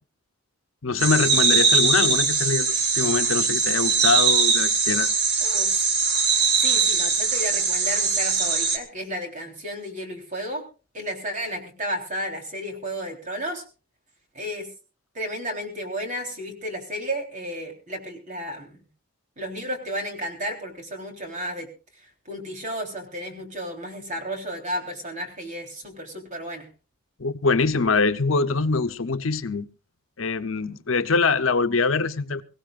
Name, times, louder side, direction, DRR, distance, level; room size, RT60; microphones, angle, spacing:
voice 1, 0.8-5.1 27.2-29.7 30.2-32.4, left 4 dB, 80° left, 0.9 m, -23 dB
sound 1, 1.0-8.8, right 4 dB, 55° right, 2.0 m, -21 dB
voice 2, 5.4-5.9 6.6-10.6 10.9-13.6 14.3-14.7 15.1-18.8 19.4-21.7 22.0-26.7, equal, 40° right, 3.7 m, -33 dB
23.0 x 16.5 x 2.5 m
head